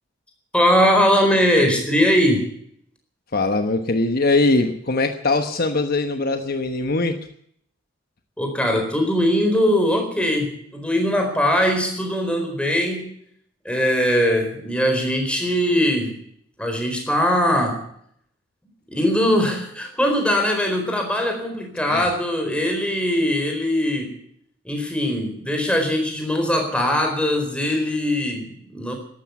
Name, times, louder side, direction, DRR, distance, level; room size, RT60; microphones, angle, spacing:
voice 1, 0.5-2.5 8.4-13.1 13.6-16.2 16.6-17.8 18.9-24.2 24.6-28.9, equal, 5° left, 3 dB, 4.3 m, -21 dB
voice 2, 3.3-7.2 21.9-22.1, left 2 dB, 50° left, 7 dB, 1.1 m, -21 dB
14.0 x 12.0 x 8.2 m, 0.68 s
head